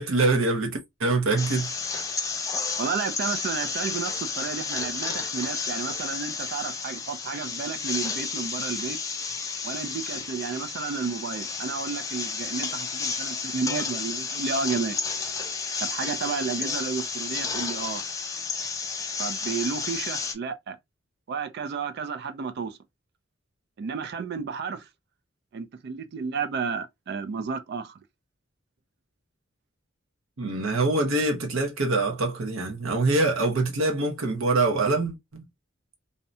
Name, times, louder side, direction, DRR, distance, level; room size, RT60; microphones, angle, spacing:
voice 1, 0.0-1.7 30.4-35.4, right 2 dB, 90° right, 0.8 m, -24 dB
sound 1, 1.4-20.3, left 5 dB, 15° left, 0.4 m, -32 dB
voice 2, 2.8-9.0 9.6-15.0 15.8-18.0 19.2-20.8 21.3-22.8 23.8-24.9 25.5-28.0, right 5 dB, 55° right, 0.3 m, -32 dB
2.6 x 2.1 x 2.5 m
head